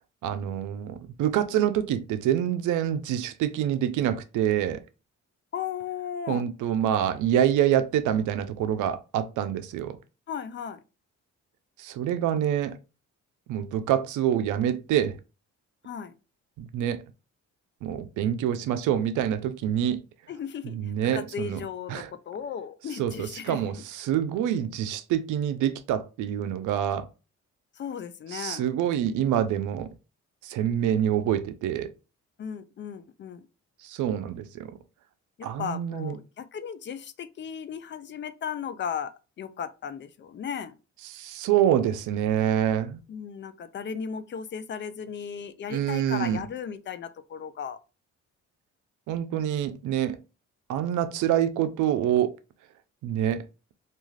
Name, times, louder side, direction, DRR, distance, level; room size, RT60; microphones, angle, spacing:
voice 1, 0.2-4.8 6.3-10.0 11.8-12.8 13.5-15.2 16.6-17.0 17.8-20.0 20.6-21.6 21.9-22.1 23.0-27.1 28.3-29.9 30.4-31.9 33.8-34.7 35.4-36.1 41.1-43.0 45.7-46.4 49.1-50.2 50.7-52.3 53.0-53.4, right 10 dB, 80° right, 0.5 m, -26 dB
voice 2, 5.5-6.4 10.3-10.8 15.8-16.1 20.3-23.6 27.8-28.6 32.4-33.5 35.4-39.1 39.4-40.7 43.1-47.8, left 7 dB, 40° left, 0.4 m, -36 dB
2.4 x 2.3 x 3.2 m
cardioid pair, 90°, 30 cm